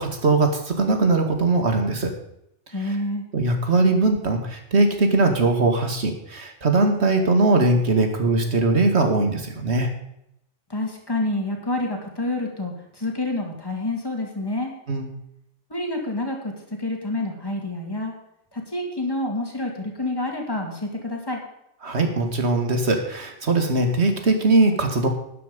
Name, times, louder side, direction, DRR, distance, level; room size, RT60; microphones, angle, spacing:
voice 1, 0.0-2.1 3.3-9.9 14.9-15.1 21.8-25.1, right 2 dB, 60° right, 5 dB, 2.3 m, -20 dB
voice 2, 2.7-3.2 10.7-14.7 15.7-16.5 16.8-18.1 18.5-21.4, left 2 dB, 20° left, 1 dB, 2.8 m, -28 dB
12.0 x 10.0 x 5.3 m, 0.79 s
omnidirectional pair, 1.2 m